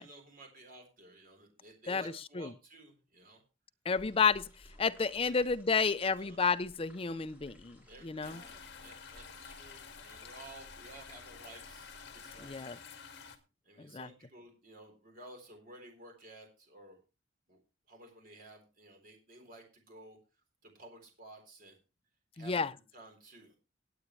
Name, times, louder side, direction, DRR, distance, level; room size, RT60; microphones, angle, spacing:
voice 1, 0.0-3.4 5.2-5.3 6.0-6.4 7.8-12.8 13.6-17.0 17.5-17.6 17.9-20.2 20.6-21.8 22.3-22.6 22.9-23.5, right 1 dB, 45° right, 4.0 m, -54 dB
voice 2, 3.9-4.5 4.8-7.8 8.0-8.4 12.4-12.8 13.8-14.1 22.4-22.7, left 5 dB, 30° left, 0.5 m, -31 dB
sound 1, 3.9-12.6, equal, 5° right, 7.8 m, -59 dB
sound 2, 8.2-13.4, left 6 dB, 60° left, 1.9 m, -50 dB
18.5 x 8.5 x 3.2 m
head